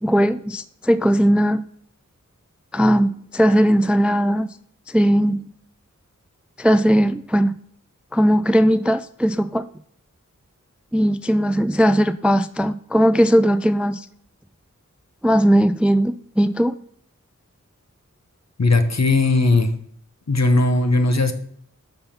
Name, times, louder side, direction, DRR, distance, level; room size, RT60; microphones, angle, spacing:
voice 1, 0.0-1.6 2.7-4.5 4.9-5.4 6.6-7.5 8.1-9.7 10.9-14.1 15.2-16.8, equal, 5° right, 14 dB, 0.3 m, -18 dB
voice 2, 18.6-19.7 20.3-21.3, left 2 dB, 55° left, 8 dB, 1.1 m, -17 dB
6.8 x 5.5 x 5.8 m, 0.65 s
wide cardioid pair, 45°, 31 cm